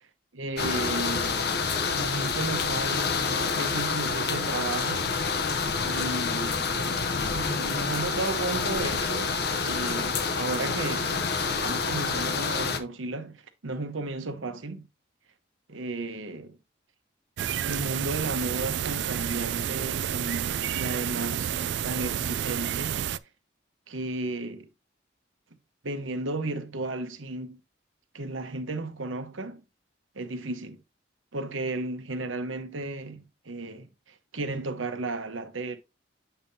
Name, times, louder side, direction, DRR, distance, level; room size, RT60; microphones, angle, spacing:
voice 1, 0.4-1.4 1.9-5.1 5.8-6.8 7.2-14.9 15.7-16.6 17.6-21.5 21.8-23.1 23.9-24.7 25.8-27.6 28.1-29.6 30.1-30.8 31.3-35.8, right 2 dB, 85° right, 1.1 m, -34 dB
sound 1, 0.6-12.8, left 5 dB, 55° left, 0.7 m, -28 dB
sound 2, 17.4-23.2, right 10 dB, 65° right, 0.3 m, -30 dB
8.0 x 5.5 x 2.8 m
head